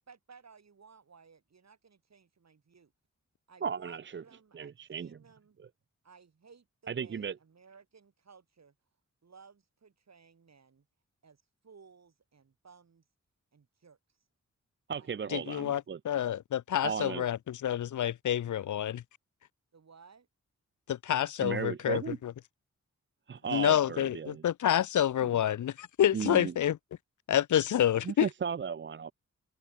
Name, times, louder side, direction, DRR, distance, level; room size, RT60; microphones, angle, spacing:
voice 1, 0.0-2.9 3.5-5.6 6.0-8.7 9.2-10.9 11.2-13.0 13.5-14.0 15.0-15.6 19.7-20.3, right 5 dB, 60° right, 6.3 m, -58 dB
voice 2, 3.6-4.2 4.5-5.2 5.6-5.7 6.9-7.3 14.9-16.0 16.8-17.2 21.4-22.2 23.3-24.5 26.1-26.5 28.0-29.1, right 6 dB, 40° right, 0.5 m, -35 dB
voice 3, 15.3-19.0 20.9-22.0 23.5-26.8 27.3-28.3, left 11 dB, 75° left, 0.5 m, -28 dB
wide cardioid pair, 145°, 30 cm